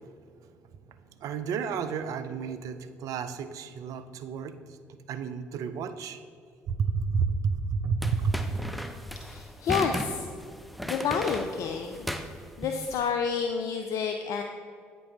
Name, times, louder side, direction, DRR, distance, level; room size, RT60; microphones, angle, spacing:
voice 1, 1.2-4.8 5.1-6.2 6.7-8.7, right 5 dB, 60° right, 11 dB, 0.4 m, -31 dB
sound 1, 8.0-13.0, equal, ahead, 0.5 m, -36 dB
voice 2, 9.2-10.3 10.8-12.1 12.6-14.4, left 6 dB, 55° left, 4 dB, 0.4 m, -29 dB
8.6 x 4.0 x 3.5 m, 2.2 s
hypercardioid pair, 50°, 7 cm